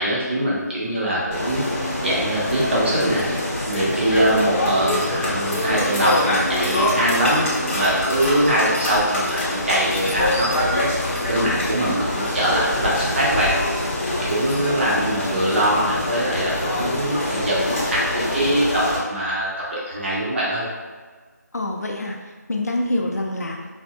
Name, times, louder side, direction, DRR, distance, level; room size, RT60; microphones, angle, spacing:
voice 1, 0.0-1.6 2.0-3.2 3.6-10.9 11.3-13.5 14.2-20.6, right 1 dB, 40° right, -7 dB, 1.1 m, -22 dB
sound 1, 1.3-19.0, left 1 dB, 45° left, 1.1 m, -25 dB
voice 2, 21.5-23.8, left 1 dB, 60° left, 0 dB, 0.5 m, -26 dB
4.7 x 2.6 x 2.3 m, 1.4 s
figure-of-eight pair, 170°, 10 cm